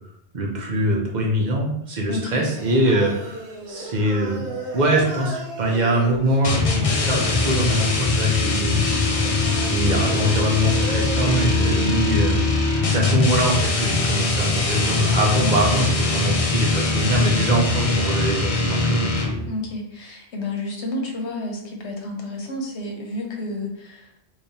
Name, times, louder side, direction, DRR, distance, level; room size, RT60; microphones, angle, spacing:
voice 1, 0.3-4.5 4.7-9.3 9.7-12.4 12.9-19.1, right 1 dB, 45° right, -1 dB, 0.9 m, -23 dB
voice 2, 2.1-2.4 15.4-15.8 19.5-24.0, left 1 dB, 85° left, 1 dB, 1.1 m, -30 dB
Singing, 2.5-12.0, right 1 dB, 90° right, 1.1 m, -35 dB
sound 1, 6.4-19.5, left 3 dB, 45° left, 0.5 m, -22 dB
3.4 x 3.2 x 2.7 m, 0.75 s
omnidirectional pair, 1.1 m